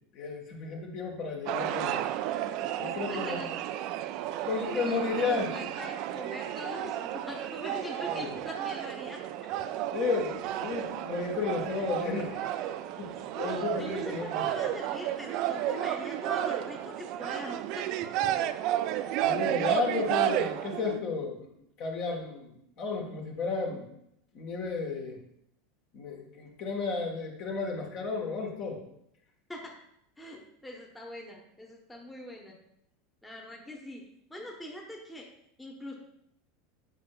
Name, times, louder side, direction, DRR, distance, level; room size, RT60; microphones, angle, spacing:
voice 1, 0.1-2.0 2.8-3.5 4.4-5.5 8.1-8.3 9.9-14.4 19.2-21.4 21.8-23.8 24.3-25.2 25.9-28.8, left 4 dB, 50° left, 0 dB, 1.4 m, -33 dB
sound 1, 1.5-21.0, right 12 dB, 50° right, 0.3 m, -32 dB
voice 2, 3.1-3.5 4.7-9.2 13.3-18.0 29.5-29.7 30.2-32.6 33.2-34.0 34.3-35.3 35.6-36.0, left 1 dB, 10° left, -1 dB, 1.0 m, -42 dB
8.1 x 5.3 x 2.4 m, 0.75 s
figure-of-eight pair, 80°, 0 cm